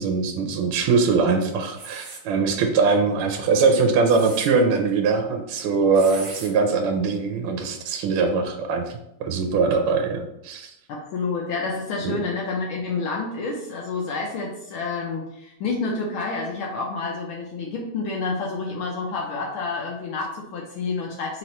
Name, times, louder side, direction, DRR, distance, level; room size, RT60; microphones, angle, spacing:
voice 1, 0.0-8.8 9.2-10.7 12.0-12.2, right 4 dB, 80° right, 4 dB, 1.5 m, -22 dB
sound 1, 1.7-2.2 3.9-4.5 5.9-6.5, right 3 dB, 55° right, 1.3 m, -38 dB
voice 2, 10.9-21.4, left 4 dB, 75° left, -1 dB, 1.4 m, -29 dB
3.9 x 3.0 x 4.1 m, 0.81 s
omnidirectional pair, 2.4 m